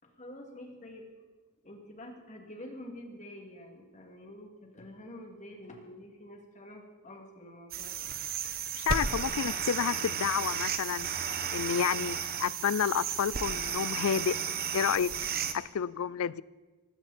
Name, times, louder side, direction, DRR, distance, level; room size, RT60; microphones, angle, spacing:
voice 1, 0.0-1.0 1.6-8.1 15.9-16.0, left 1 dB, 35° left, 2.7 m, -47 dB
sound 1, 7.7-15.5, right 7 dB, 45° right, 1.0 m, -33 dB
voice 2, 8.7-14.4 14.7-15.1 15.5-16.4, left 8 dB, 75° left, 0.4 m, -30 dB
19.0 x 16.5 x 4.3 m
head